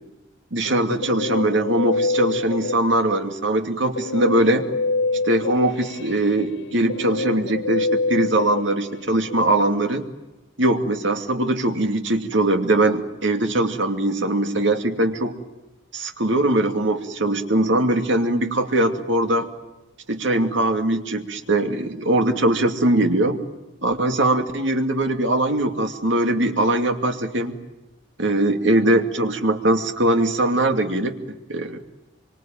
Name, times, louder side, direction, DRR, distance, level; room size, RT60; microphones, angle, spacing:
voice 1, 0.5-4.6 5.2-10.0 10.6-15.3 15.9-19.5 20.1-23.4 23.8-27.5 28.2-31.8, right 1 dB, 70° right, 5 dB, 2.5 m, -21 dB
Guitar, 0.7-3.2 3.9-9.4, left 3 dB, 70° left, 1.0 m, -26 dB
25.5 x 25.0 x 9.0 m, 1.0 s
head